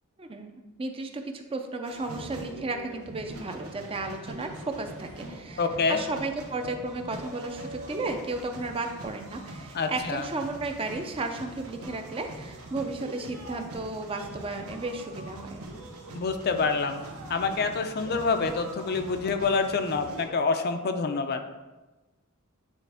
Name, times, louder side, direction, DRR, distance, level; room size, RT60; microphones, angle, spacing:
voice 1, 0.2-15.6, right 2 dB, 25° right, 5 dB, 0.5 m, -34 dB
sound 1, 1.8-20.3, right 1 dB, 75° right, 1.1 m, -43 dB
voice 2, 5.6-6.0 9.7-10.2 16.1-17.0 17.3-21.4, left 4 dB, 45° left, 7 dB, 0.4 m, -27 dB
9.0 x 3.5 x 3.4 m, 1.1 s
head